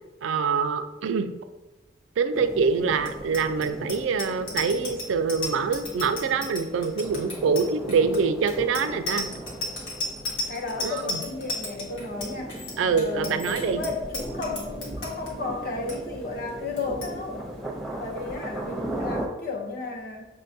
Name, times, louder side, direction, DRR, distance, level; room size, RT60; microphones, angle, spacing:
voice 1, 0.2-1.3 2.2-9.3 10.8-11.2 12.8-13.8, right 5 dB, 90° right, 9 dB, 0.3 m, -25 dB
sound 1, 2.3-19.3, right 1 dB, ahead, 0.6 m, -38 dB
Bicycle bell, 3.0-15.3 15.7-15.9 16.2-16.5 16.8-17.1, left 2 dB, 85° left, 1.1 m, -34 dB
voice 2, 10.5-12.6 12.9-17.5 18.0-20.3, left 3 dB, 50° left, 1 dB, 0.7 m, -33 dB
6.4 x 2.2 x 2.7 m, 1.1 s
head